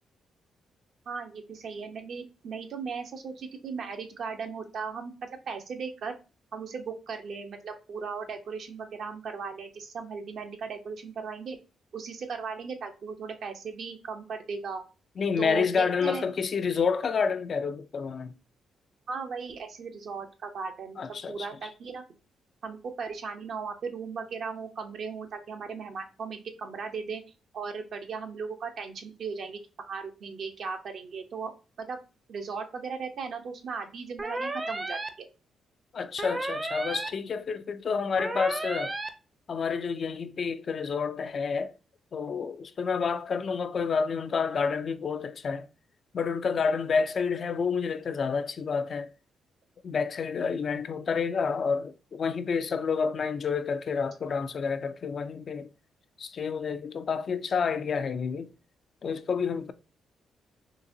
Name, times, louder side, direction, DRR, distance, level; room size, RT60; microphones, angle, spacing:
voice 1, 1.1-6.1 6.5-11.6 11.9-14.8 15.4-16.3 19.1-21.0 21.3-22.0 22.6-27.2 27.5-31.5 31.8-32.0 32.3-35.3, right 5 dB, 65° right, 0.7 m, -37 dB
voice 2, 15.2-18.3 21.0-21.5 35.9-38.9 39.5-41.7 42.1-45.7 46.1-49.1 49.8-55.7 56.2-58.5 59.0-59.7, left 5 dB, 55° left, 0.3 m, -29 dB
sound 1, 34.2-35.1 36.2-37.1 38.2-39.1, right 2 dB, 30° right, 0.6 m, -33 dB
3.9 x 2.8 x 2.6 m
supercardioid pair, 65°, 0 cm